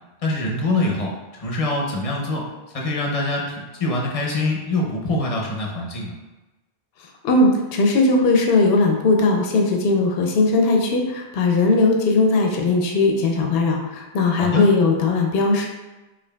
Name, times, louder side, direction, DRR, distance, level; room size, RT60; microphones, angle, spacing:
voice 1, 0.2-1.1 1.4-2.5 2.7-6.1 14.4-14.6, left 2 dB, 40° left, -1 dB, 0.7 m, -24 dB
voice 2, 7.2-15.7, left 3 dB, 70° left, 2 dB, 0.8 m, -18 dB
4.9 x 2.6 x 2.2 m, 1.1 s
omnidirectional pair, 1.0 m